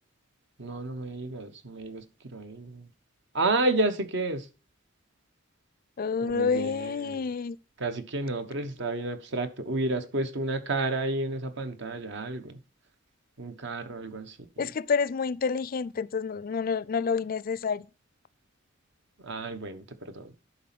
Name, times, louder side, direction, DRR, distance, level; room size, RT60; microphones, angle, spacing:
voice 1, 0.6-2.9 3.3-4.5 6.2-7.3 7.8-12.6 13.4-14.7 19.2-20.3, right 2 dB, 60° right, 1.2 m, -31 dB
voice 2, 6.0-7.6 14.6-17.9, left 5 dB, 45° left, 0.4 m, -28 dB
11.5 x 4.1 x 5.9 m
head